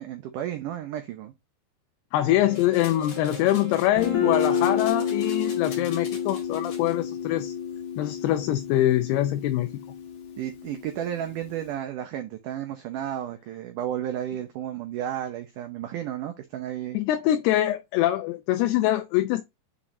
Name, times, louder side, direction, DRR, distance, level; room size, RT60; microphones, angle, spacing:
voice 1, 0.0-1.3 10.4-17.0, right 11 dB, 80° right, 1.8 m, -33 dB
voice 2, 2.1-7.5 8.0-9.7 16.9-19.4, left 14 dB, 80° left, 2.6 m, -24 dB
Wind instrument woodwind instrument, 2.4-5.3, equal, 55° right, 1.0 m, -40 dB
sound 1, 2.5-7.0, left 5 dB, 45° left, 3.1 m, -45 dB
Guitar, 4.0-11.6, left 7 dB, 60° left, 1.3 m, -30 dB
7.2 x 5.1 x 2.6 m
omnidirectional pair, 4.7 m